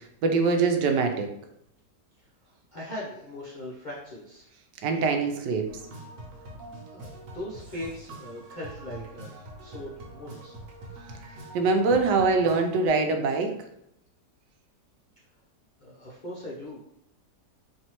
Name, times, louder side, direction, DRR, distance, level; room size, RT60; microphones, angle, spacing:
voice 1, 0.2-1.3 4.8-5.7 11.5-13.5, right 4 dB, 85° right, 5 dB, 1.2 m, -23 dB
voice 2, 2.7-4.5 6.9-9.3 9.6-10.5 15.8-16.8, left 1 dB, 55° left, -7 dB, 0.5 m, -39 dB
sound 1, 5.7-12.9, right 2 dB, 70° right, 1.3 m, -44 dB
4.4 x 2.8 x 2.9 m, 0.76 s
omnidirectional pair, 1.8 m